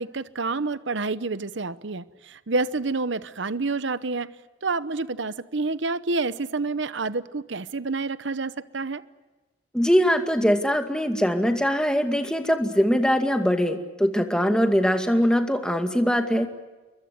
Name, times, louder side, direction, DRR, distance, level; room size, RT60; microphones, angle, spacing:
voice 1, 0.0-4.3 4.6-9.0, right 3 dB, 65° right, 0.9 m, -28 dB
voice 2, 9.7-16.5, equal, 5° left, 2.2 m, -22 dB
29.5 x 22.5 x 8.1 m
head